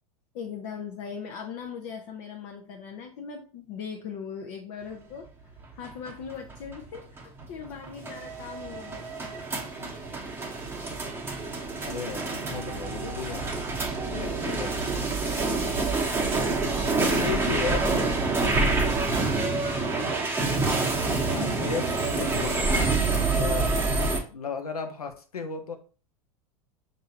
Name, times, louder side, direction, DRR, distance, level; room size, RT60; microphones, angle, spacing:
voice 1, 0.3-5.3 5.7-9.1 14.0-14.6 15.2-16.4 16.9-17.5 18.4-18.8, left 7 dB, 55° left, 2 dB, 0.7 m, -40 dB
sound 1, 5.6-24.2, right 3 dB, 10° right, 1.0 m, -27 dB
voice 2, 11.5-13.5 14.1-14.7 17.0-18.2 21.1-22.9 23.4-23.7 24.3-25.8, left 5 dB, 90° left, 6 dB, 0.7 m, -34 dB
5.6 x 2.7 x 2.7 m, 0.37 s
hypercardioid pair, 90°, 19 cm